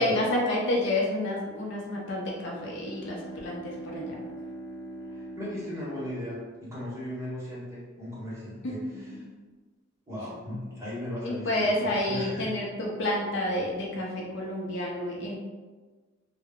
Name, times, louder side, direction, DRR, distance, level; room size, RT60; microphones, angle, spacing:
voice 1, 0.0-4.2 8.6-9.3 11.2-15.4, left 1 dB, 60° left, -3 dB, 0.5 m, -29 dB
Bowed string instrument, 2.3-7.0, right 1 dB, 15° left, 0.3 m, -43 dB
voice 2, 5.0-9.0 10.1-12.5, left 1 dB, 15° right, -9 dB, 1.0 m, -37 dB
2.2 x 2.1 x 3.6 m, 1.3 s
head